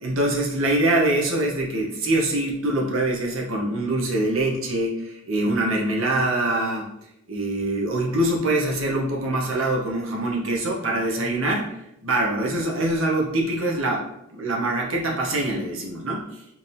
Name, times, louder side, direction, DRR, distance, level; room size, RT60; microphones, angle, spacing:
voice 1, 0.0-6.9 7.3-11.7 12.0-14.0 14.3-16.3, right 1 dB, 90° right, -1 dB, 1.0 m, -24 dB
4.9 x 2.8 x 3.4 m, 0.82 s
head